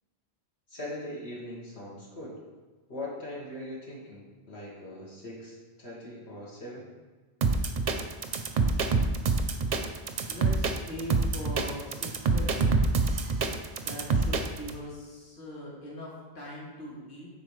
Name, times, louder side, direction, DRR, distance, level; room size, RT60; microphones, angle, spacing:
voice 1, 0.7-2.4 2.9-6.9, left 1 dB, 75° left, -5 dB, 1.8 m, -41 dB
sound 1, 7.4-14.7, right 4 dB, 50° right, 0.6 m, -26 dB
voice 2, 10.3-12.7 13.7-17.3, left 1 dB, 50° left, -5 dB, 1.8 m, -41 dB
10.5 x 4.1 x 3.2 m, 1.3 s
omnidirectional pair, 1.1 m